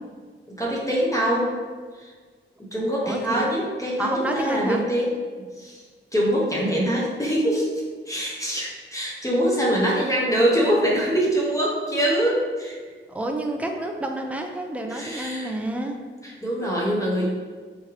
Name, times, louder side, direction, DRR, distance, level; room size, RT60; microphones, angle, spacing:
voice 1, 0.5-1.5 1.9-2.1 2.7-5.1 5.6-5.8 6.1-12.8 14.9-15.5 16.2-17.3, equal, 15° left, -4 dB, 0.8 m, -24 dB
voice 2, 3.0-3.4 4.0-4.8 9.9-10.1 13.1-16.0, right 1 dB, 5° right, 2 dB, 0.3 m, -29 dB
3.6 x 3.2 x 3.0 m, 1.5 s
wide cardioid pair, 125°, 21 cm